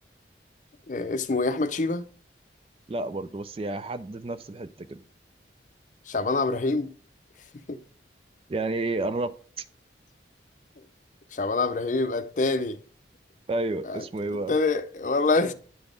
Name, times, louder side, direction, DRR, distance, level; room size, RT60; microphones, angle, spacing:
voice 1, 0.9-2.0 6.1-6.9 7.7-7.8 11.3-12.8 13.9-14.0 14.5-15.5, left 3 dB, 40° left, 0.5 m, -25 dB
voice 2, 2.9-5.0 8.5-9.6 13.5-14.6, right 2 dB, 30° right, 0.4 m, -31 dB
9.7 x 3.9 x 5.1 m
head